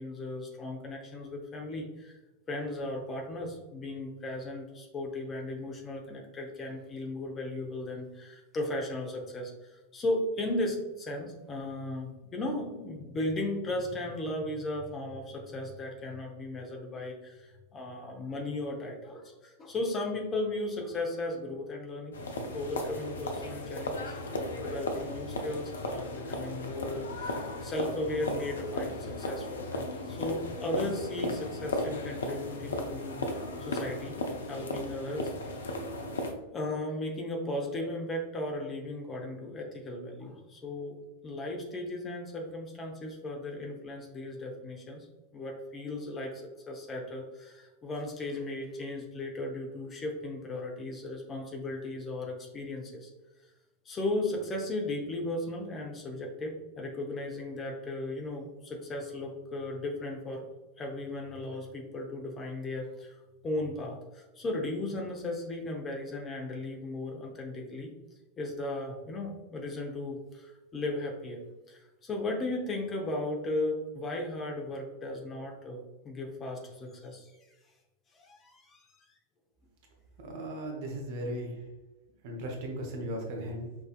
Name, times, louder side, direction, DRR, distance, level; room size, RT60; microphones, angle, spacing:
voice 1, 0.0-2.2 2.5-22.2 22.5-24.1 24.6-34.2 34.5-35.7 36.5-41.0 41.2-45.1 45.3-53.1 53.8-60.5 60.8-63.2 63.4-67.9 68.4-71.4 71.7-77.3 78.1-78.8 80.2-80.3, left 1 dB, 25° left, 1 dB, 0.7 m, -36 dB
sound 1, 22.1-36.3, left 2 dB, 65° left, 0.5 m, -36 dB
voice 2, 80.2-81.6 82.2-83.7, right 1 dB, 50° right, 1 dB, 0.9 m, -37 dB
5.9 x 2.6 x 2.4 m, 1.1 s
figure-of-eight pair, 90°, 0 cm